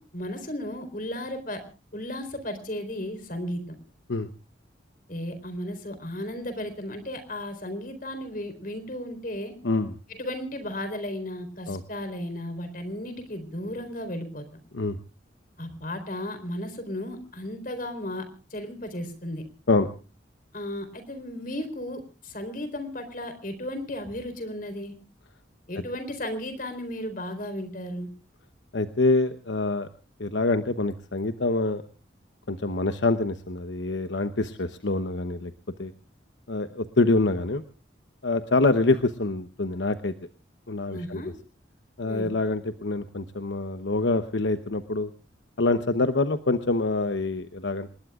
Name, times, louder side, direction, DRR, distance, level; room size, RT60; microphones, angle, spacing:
voice 1, 0.0-1.6 1.9-3.8 5.1-9.5 10.2-14.4 15.6-18.3 18.5-19.4 20.5-24.9 25.7-28.1 40.9-41.3 42.1-42.3, left 1 dB, 50° left, 9 dB, 4.2 m, -34 dB
voice 2, 9.6-10.0 11.7-11.8 14.7-15.0 19.7-19.9 28.7-29.9 30.2-31.8 32.5-35.5 35.8-35.9 36.5-37.6 38.2-40.1 40.7-41.2 42.0-45.1 45.6-47.9, left 2 dB, 75° left, 10 dB, 0.9 m, -25 dB
27.5 x 20.5 x 2.4 m, 0.35 s
head